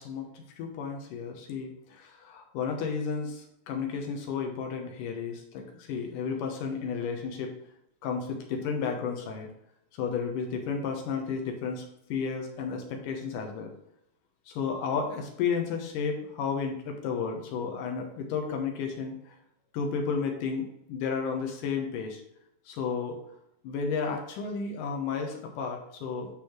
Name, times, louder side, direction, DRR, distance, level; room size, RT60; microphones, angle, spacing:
voice 1, 0.0-7.5 8.0-9.5 9.9-13.7 14.5-19.3 19.7-22.2 22.7-23.2 23.6-26.4, left 5 dB, 70° left, 2 dB, 2.2 m, -32 dB
11.5 x 4.2 x 3.1 m, 0.77 s
omnidirectional pair, 4.5 m